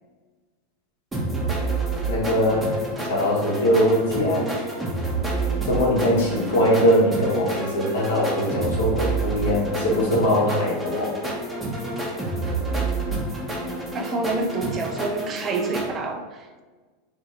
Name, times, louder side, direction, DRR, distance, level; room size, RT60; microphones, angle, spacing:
sound 1, 1.1-15.9, right 2 dB, 10° right, 0.9 m, -28 dB
voice 1, 2.1-2.7 3.0-4.5 5.7-11.1, equal, 70° left, -3 dB, 1.1 m, -21 dB
voice 2, 13.9-16.6, right 3 dB, 30° right, 4 dB, 0.4 m, -28 dB
2.7 x 2.6 x 3.6 m, 1.3 s
hypercardioid pair, 90°, 0 cm